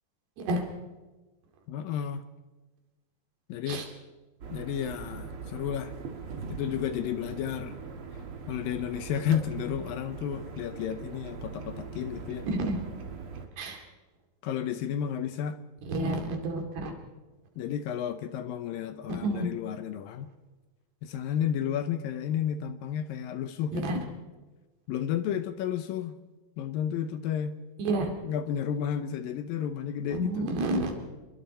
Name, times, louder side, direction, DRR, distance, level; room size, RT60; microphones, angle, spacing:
voice 1, 1.7-2.2 3.5-3.9 4.5-5.9 6.5-7.8 8.5-12.5 14.4-15.6 17.6-20.3 21.0-24.0 24.9-26.2 26.6-27.6 28.0-30.5, left 9 dB, 75° left, 10 dB, 2.3 m, -32 dB
sound 1, 4.4-13.5, right 5 dB, 45° right, 2.0 m, -41 dB
voice 2, 12.5-12.8 13.6-13.8 15.9-16.9 19.2-19.5 23.7-24.0 27.8-28.1 30.1-30.9, right 1 dB, 80° right, 3 dB, 4.6 m, -29 dB
27.5 x 22.0 x 4.3 m, 1.2 s
omnidirectional pair, 4.6 m